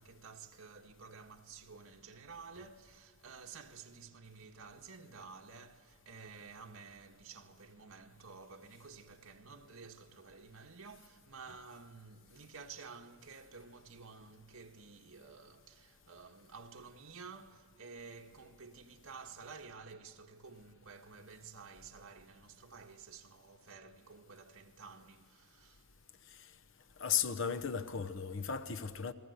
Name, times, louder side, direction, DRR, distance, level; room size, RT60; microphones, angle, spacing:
voice 1, 0.0-25.9, right 5 dB, 75° right, 1.6 m, -52 dB
voice 2, 27.0-29.1, left 7 dB, 60° left, 0.9 m, -35 dB
30.0 x 21.5 x 8.2 m
head